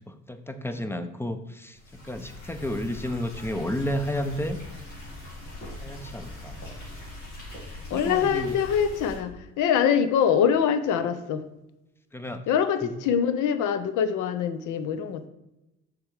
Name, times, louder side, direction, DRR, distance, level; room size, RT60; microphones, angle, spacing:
voice 1, 0.1-4.6 5.8-6.6 7.9-8.6 12.1-12.4 12.8-12.9, left 1 dB, 5° left, 9 dB, 0.5 m, -32 dB
sound 1, 1.7-9.2, left 1 dB, 75° left, 2.1 m, -41 dB
voice 2, 7.9-11.4 12.5-15.3, left 8 dB, 55° left, 11 dB, 0.7 m, -24 dB
6.0 x 3.8 x 4.8 m, 0.92 s
hypercardioid pair, 50°, 36 cm